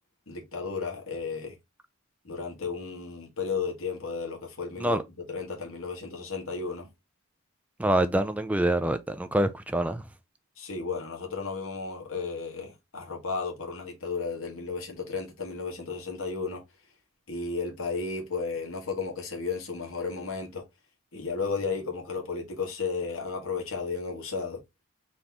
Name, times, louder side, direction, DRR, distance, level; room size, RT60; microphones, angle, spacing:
voice 1, 0.3-1.5 2.2-5.0 5.3-6.9 10.6-16.6 17.3-20.6 21.1-24.6, left 4 dB, 70° left, 1.4 m, -33 dB
voice 2, 7.8-10.0, right 1 dB, 5° right, 0.3 m, -25 dB
4.1 x 2.9 x 3.4 m
head